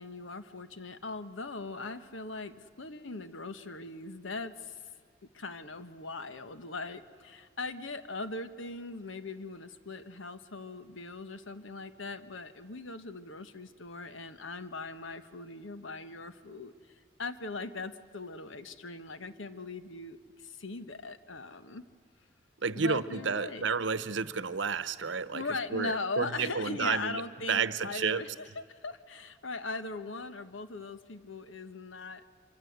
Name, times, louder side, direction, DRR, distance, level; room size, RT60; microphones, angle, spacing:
voice 1, 0.0-4.8 5.3-21.8 22.7-23.7 25.3-32.2, left 3 dB, 80° left, 11 dB, 1.3 m, -40 dB
voice 2, 22.6-25.4 25.7-27.2 27.5-28.2, right 5 dB, 70° right, 15 dB, 0.9 m, -31 dB
25.5 x 25.0 x 8.0 m, 2.1 s
head